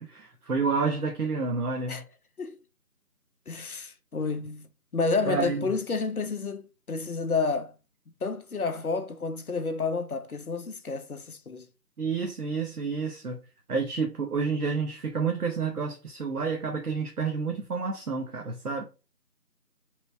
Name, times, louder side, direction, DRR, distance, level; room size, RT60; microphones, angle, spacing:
voice 1, 0.0-2.0 5.3-5.7 12.0-13.4 13.7-18.8, right 4 dB, 65° right, 0.6 m, -29 dB
voice 2, 3.5-7.8 8.2-11.7, left 4 dB, 65° left, 0.5 m, -30 dB
3.2 x 3.0 x 2.4 m
figure-of-eight pair, 180°, 48 cm